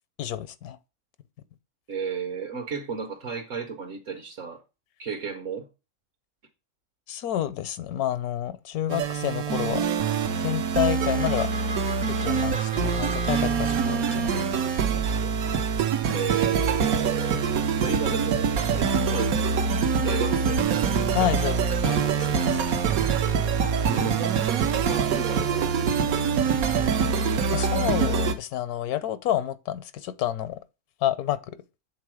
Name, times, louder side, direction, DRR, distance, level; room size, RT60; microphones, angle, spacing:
voice 1, 0.2-0.8 7.1-9.9 10.4-11.5 12.1-15.0 21.1-22.6 27.5-30.6 31.0-31.6, left 12 dB, 80° left, 1.2 m, -29 dB
voice 2, 1.9-4.6 5.0-5.7 16.1-17.5 17.8-19.4 20.0-20.6 23.6-24.4 24.8-26.3, right 5 dB, 60° right, 1.2 m, -33 dB
sound 1, 8.9-28.3, right 6 dB, 75° right, 1.2 m, -24 dB
sound 2, 11.0-16.7, right 2 dB, 30° right, 0.6 m, -40 dB
7.6 x 3.8 x 4.8 m
omnidirectional pair, 1.6 m